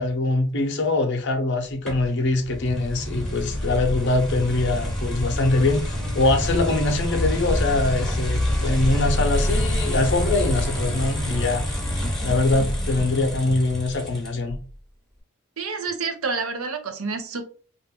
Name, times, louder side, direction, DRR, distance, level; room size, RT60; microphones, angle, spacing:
voice 1, 0.0-11.6 12.2-14.6, left 2 dB, 55° left, 0.7 m, -23 dB
sound 1, 1.9-14.6, equal, 5° left, 0.8 m, -26 dB
voice 2, 15.6-17.4, right 4 dB, 85° right, 0.6 m, -28 dB
2.5 x 2.3 x 3.4 m
head